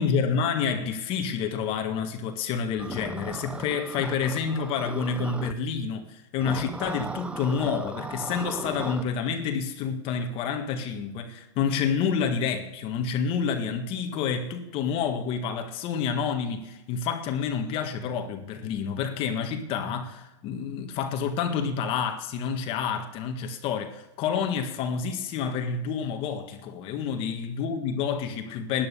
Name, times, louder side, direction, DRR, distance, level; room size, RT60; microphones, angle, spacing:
voice 1, 0.0-28.9, left 6 dB, 35° left, 1.7 m, -29 dB
sound 1, 2.8-5.5 6.4-9.0, right 3 dB, 5° right, 0.6 m, -37 dB
12.5 x 11.0 x 6.9 m
hypercardioid pair, 140°, 16 cm